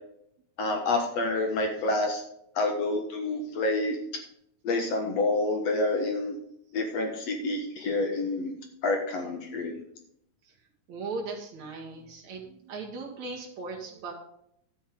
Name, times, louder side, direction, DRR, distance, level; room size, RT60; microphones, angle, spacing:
voice 1, 0.6-2.2 2.6-4.0 4.7-6.4 6.7-8.5 8.8-9.8, left 2 dB, 60° left, 4 dB, 2.2 m, -28 dB
voice 2, 10.9-14.1, right 3 dB, 60° right, 0 dB, 3.0 m, -38 dB
11.5 x 8.6 x 3.7 m, 0.73 s
omnidirectional pair, 3.8 m